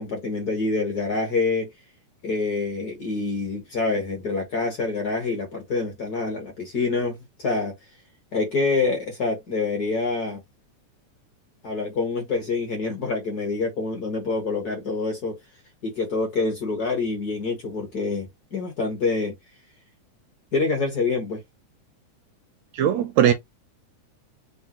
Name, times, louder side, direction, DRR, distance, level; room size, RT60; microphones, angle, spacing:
voice 1, 0.0-1.7 2.2-7.7 8.3-10.4 11.6-15.4 15.8-19.4 20.5-21.4, left 3 dB, 65° left, 0.9 m, -26 dB
voice 2, 22.7-23.3, right 10 dB, 80° right, 1.7 m, -19 dB
6.2 x 2.2 x 2.9 m
omnidirectional pair, 3.6 m